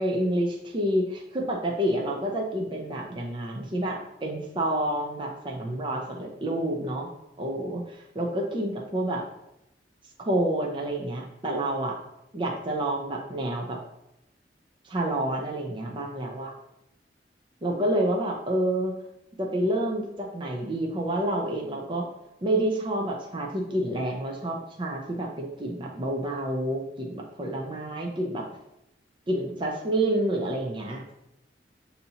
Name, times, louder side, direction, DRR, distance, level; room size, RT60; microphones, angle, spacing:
voice 1, 0.0-7.1 7.4-9.2 10.2-12.0 12.3-13.8 14.8-16.5 17.6-18.9 19.4-22.1 22.4-28.4 29.3-31.0, right 1 dB, 30° right, -1 dB, 0.5 m, -28 dB
6.8 x 2.7 x 2.8 m, 0.86 s
head